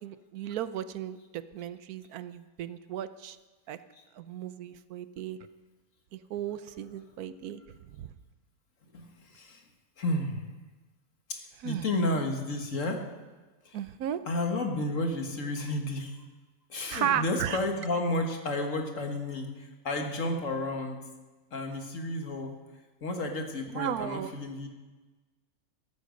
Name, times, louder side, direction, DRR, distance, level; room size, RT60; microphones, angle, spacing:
voice 1, 0.0-3.4 3.7-3.8 4.2-5.4 6.1-7.6 7.9-8.1 11.6-11.9 13.7-14.2 16.9-17.6 23.7-24.3, right 10 dB, 90° right, 12 dB, 1.2 m, -35 dB
voice 2, 8.9-9.6 10.0-10.4 11.3-13.1 13.7-13.8 14.3-16.2 16.7-21.0 21.5-22.5 23.0-24.7, left 2 dB, 60° left, 3 dB, 2.0 m, -32 dB
13.5 x 13.5 x 5.2 m, 1.2 s
omnidirectional pair, 1.5 m